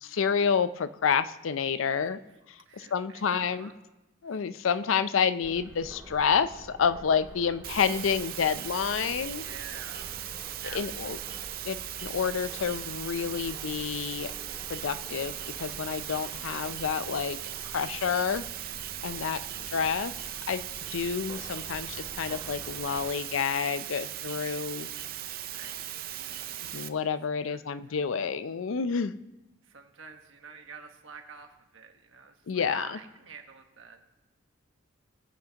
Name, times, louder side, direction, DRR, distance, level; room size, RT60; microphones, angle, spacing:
voice 1, 0.0-2.2 2.5-3.7 4.2-9.4 10.7-11.2 11.6-14.3 14.7-17.4 17.6-18.4 19.0-20.1 20.5-20.6 20.9-24.9 26.7-29.1 32.5-32.9, left 6 dB, 80° left, 14 dB, 0.5 m, -29 dB
voice 2, 2.0-2.4 2.6-3.8 4.2-4.5 9.2-10.3 10.6-11.5 19.1-19.8 24.8-26.9 27.3-28.3 29.6-34.1, right 5 dB, 75° right, 5 dB, 1.2 m, -50 dB
sound 1, 5.4-23.1, equal, 20° right, 1.9 m, -48 dB
sound 2, 7.6-26.9, right 12 dB, 45° right, 0.5 m, -38 dB
22.0 x 8.2 x 2.9 m, 1.0 s
head